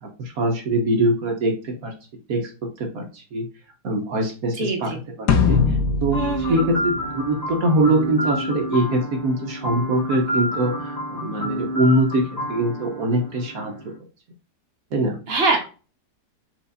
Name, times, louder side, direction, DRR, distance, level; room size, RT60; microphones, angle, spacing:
voice 1, 0.0-1.9 2.3-2.5 2.8-3.5 3.8-13.7 14.9-15.2, right 1 dB, 60° right, 3 dB, 1.3 m, -23 dB
voice 2, 4.6-5.0 6.1-6.6 15.3-15.6, right 3 dB, 40° right, 3 dB, 1.1 m, -23 dB
sound 1, 5.3-7.7, left 5 dB, 75° left, 1.3 m, -22 dB
sound 2, 6.1-14.0, equal, 20° left, 1.6 m, -29 dB
4.4 x 4.1 x 2.5 m, 0.34 s
omnidirectional pair, 1.9 m